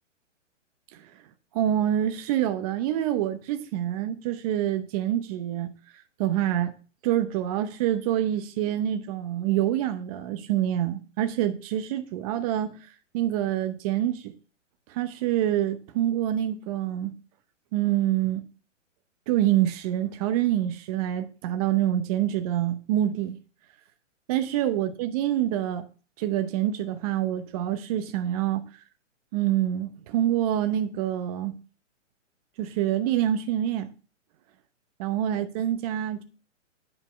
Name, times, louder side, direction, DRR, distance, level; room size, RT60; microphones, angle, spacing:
voice 1, 1.5-5.7 6.2-6.7 7.0-12.8 13.1-14.3 14.9-17.1 17.7-18.4 19.3-23.4 24.3-25.8 26.2-28.6 29.3-31.6 32.6-33.9 35.0-36.2, right 12 dB, 30° right, 0.8 m, -26 dB
9.5 x 5.4 x 4.5 m
hypercardioid pair, 130°, 38 cm